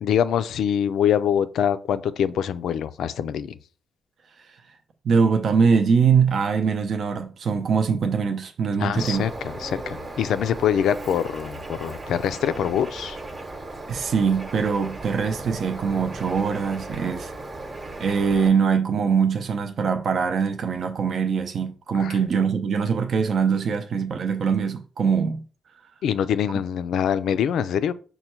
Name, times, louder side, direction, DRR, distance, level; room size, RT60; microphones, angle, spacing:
voice 1, 0.0-3.6 8.8-13.2 22.0-22.2 26.0-27.9, left 9 dB, 85° left, 0.3 m, -24 dB
voice 2, 5.0-9.3 13.9-17.3 18.0-25.4, right 6 dB, 60° right, 0.5 m, -22 dB
Bird, 9.0-18.5, right 2 dB, 30° right, 0.9 m, -36 dB
5.5 x 2.2 x 4.4 m
cardioid pair, 95°, 0 cm